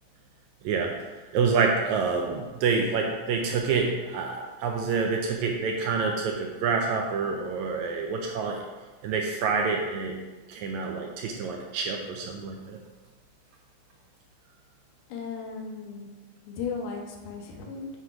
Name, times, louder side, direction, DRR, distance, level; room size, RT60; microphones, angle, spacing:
voice 1, 0.6-1.0 1.3-8.6 9.0-10.2 10.5-12.8, right 5 dB, 80° right, 2 dB, 1.7 m, -27 dB
voice 2, 15.1-16.1 16.5-17.9, left 5 dB, 90° left, 1 dB, 2.5 m, -36 dB
8.0 x 3.0 x 4.8 m, 1.2 s
omnidirectional pair, 3.7 m